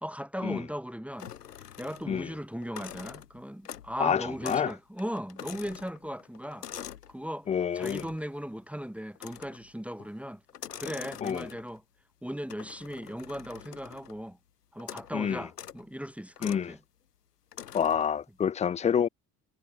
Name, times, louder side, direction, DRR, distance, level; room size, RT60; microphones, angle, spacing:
voice 1, 0.0-1.3 1.8-6.7 7.1-7.5 7.7-10.4 10.7-11.8 12.2-14.4 14.7-16.8, equal, 5° right, 2.6 m, -37 dB
sound 1, 1.2-2.3 2.6-4.0 4.4-4.7 5.0-7.1 7.8-8.3 9.2-9.7 10.5-11.8 12.5-14.2 14.8-15.2 15.5-15.8 16.4-16.7 17.5-18.1, left 10 dB, 85° left, 2.6 m, -45 dB
voice 2, 4.0-4.7 7.5-8.0 11.2-11.5 15.1-15.5 16.4-16.7 17.7-19.1, left 8 dB, 15° left, 0.3 m, -28 dB
hypercardioid pair, 55°, 46 cm